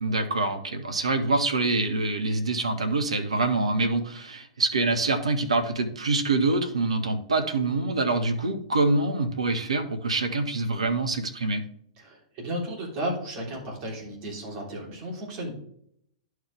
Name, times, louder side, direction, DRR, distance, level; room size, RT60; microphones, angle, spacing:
voice 1, 0.0-11.6, right 3 dB, 70° right, 7 dB, 1.0 m, -25 dB
voice 2, 12.0-15.5, equal, 35° right, -2 dB, 3.2 m, -34 dB
11.0 x 4.8 x 3.5 m, 0.68 s
figure-of-eight pair, 100°, 3 cm